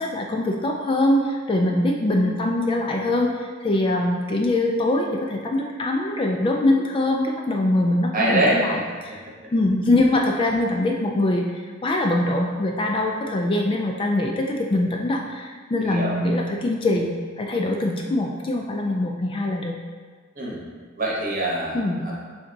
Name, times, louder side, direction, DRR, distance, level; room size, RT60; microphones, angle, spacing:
voice 1, 0.0-9.2 9.5-17.1 17.4-19.8 21.7-22.1, left 1 dB, 25° left, 1 dB, 0.3 m, -23 dB
voice 2, 8.1-8.7 9.1-9.2 15.8-16.1 20.4-20.6 21.0-22.1, right 1 dB, 45° right, -4 dB, 1.0 m, -24 dB
3.8 x 3.4 x 3.9 m, 1.6 s
head